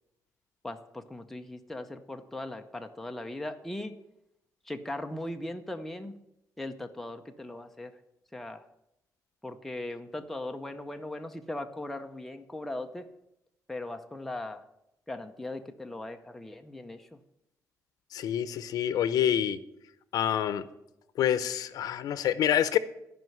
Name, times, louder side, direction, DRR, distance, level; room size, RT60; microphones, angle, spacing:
voice 1, 0.6-4.0 4.7-6.2 6.6-7.9 8.3-8.6 9.4-13.1 13.7-14.6 15.1-17.2, left 1 dB, 5° left, 5 dB, 0.7 m, -39 dB
voice 2, 18.1-19.6 20.1-20.6 21.2-22.8, left 10 dB, 75° left, 14 dB, 0.7 m, -27 dB
12.5 x 5.5 x 9.2 m, 0.85 s
cardioid pair, 170°, 6 cm